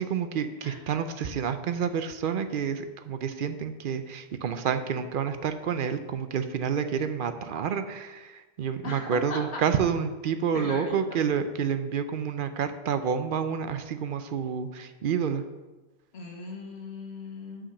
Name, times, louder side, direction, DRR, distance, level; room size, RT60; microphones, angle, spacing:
voice 1, 0.0-15.4, right 7 dB, 60° right, 9 dB, 0.7 m, -29 dB
voice 2, 8.8-9.6 10.5-11.0 16.1-17.7, left 3 dB, 80° left, 0 dB, 1.5 m, -38 dB
5.9 x 4.9 x 6.5 m, 1.2 s
omnidirectional pair, 1.1 m